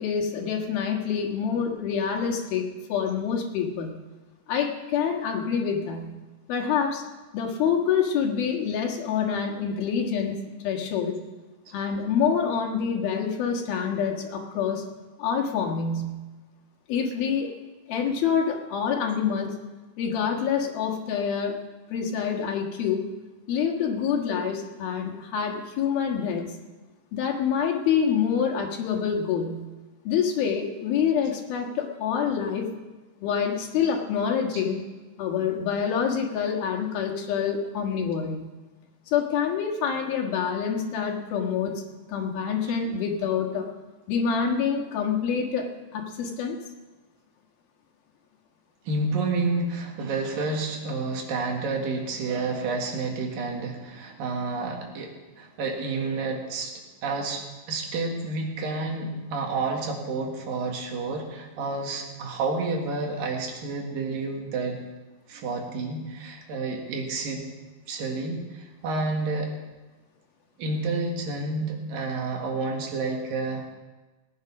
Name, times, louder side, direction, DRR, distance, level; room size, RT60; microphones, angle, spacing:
voice 1, 0.0-4.0 4.5-6.2 6.5-7.0 7.3-10.4 10.6-11.2 11.7-14.9 15.2-16.2 16.9-17.5 17.9-19.5 20.0-21.6 21.9-23.1 23.5-26.6 27.1-29.7 30.1-32.7 33.2-34.8 35.2-38.4 39.1-43.7 44.1-46.6, left 7 dB, 85° left, 1 dB, 3.5 m, -26 dB
voice 2, 48.9-55.1 55.4-56.7 57.0-64.8 65.3-67.4 67.9-69.5 70.6-73.7, right 3 dB, 70° right, 2 dB, 3.5 m, -30 dB
19.0 x 9.2 x 5.9 m, 1.2 s
omnidirectional pair, 4.2 m